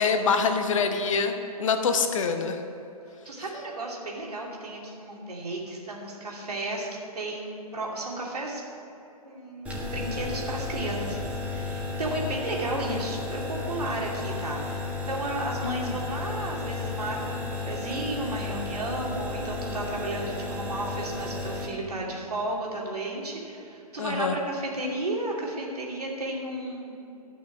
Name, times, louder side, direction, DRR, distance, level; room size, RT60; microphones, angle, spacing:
voice 1, 0.0-2.6 15.6-16.0 24.0-24.4, left 5 dB, 55° left, 7 dB, 1.0 m, -25 dB
voice 2, 3.2-8.6 9.2-14.8 15.1-27.2, right 2 dB, 80° right, -2 dB, 2.6 m, -33 dB
sound 1, 9.6-21.7, left 3 dB, 5° right, 1.5 m, -33 dB
12.5 x 6.1 x 6.2 m, 2.9 s
figure-of-eight pair, 130°, 20 cm